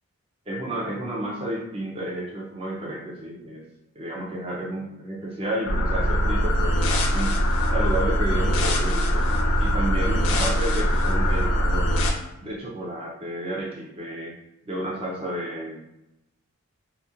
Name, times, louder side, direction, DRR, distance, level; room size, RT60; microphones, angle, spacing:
voice 1, 0.5-3.6 4.0-7.4 7.7-11.9 12.4-14.3 14.7-16.0, right 1 dB, 25° right, -4 dB, 0.4 m, -31 dB
sound 1, 5.7-12.1, equal, 70° left, 0.5 m, -22 dB
2.9 x 2.5 x 2.4 m, 0.90 s
head